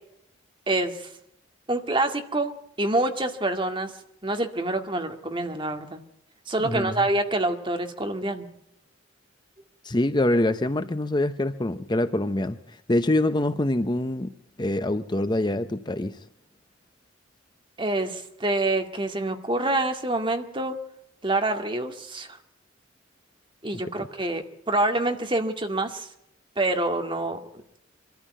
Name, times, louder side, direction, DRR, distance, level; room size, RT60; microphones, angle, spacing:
voice 1, 0.7-1.1 1.7-2.5 2.8-3.9 4.2-6.0 6.5-8.5 17.8-20.7 21.2-22.4 23.6-26.1 26.6-27.4, right 2 dB, 25° right, 6 dB, 2.0 m, -26 dB
voice 2, 6.6-7.1 9.8-14.3 14.6-16.2, left 1 dB, 25° left, 11 dB, 0.7 m, -25 dB
24.5 x 14.0 x 9.1 m, 0.78 s
head